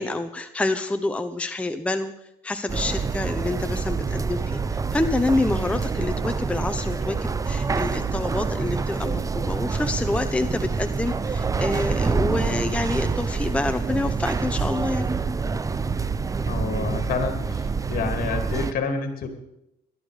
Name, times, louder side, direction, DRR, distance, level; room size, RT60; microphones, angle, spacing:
voice 1, 0.0-2.1 2.4-15.1, left 2 dB, 5° left, 7 dB, 0.8 m, -27 dB
sound 1, 2.7-18.7, right 4 dB, 20° right, 0.6 m, -26 dB
voice 2, 16.5-19.3, left 5 dB, 60° left, 6 dB, 2.8 m, -28 dB
18.0 x 12.5 x 5.0 m, 0.86 s
cardioid pair, 110°, 17 cm